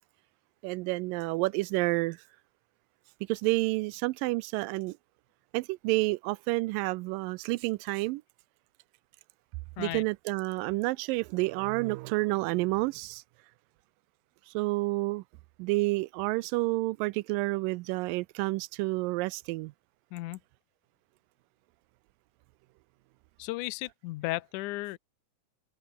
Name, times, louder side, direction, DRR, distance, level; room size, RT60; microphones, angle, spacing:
voice 1, 0.6-2.2 3.3-5.0 5.5-8.2 9.8-13.2 14.5-15.2 15.6-19.7, right 22 dB, 85° right, 2.0 m, -29 dB
voice 2, 23.4-25.0, left 19 dB, 85° left, 1.7 m, -35 dB
omnidirectional pair, 4.5 m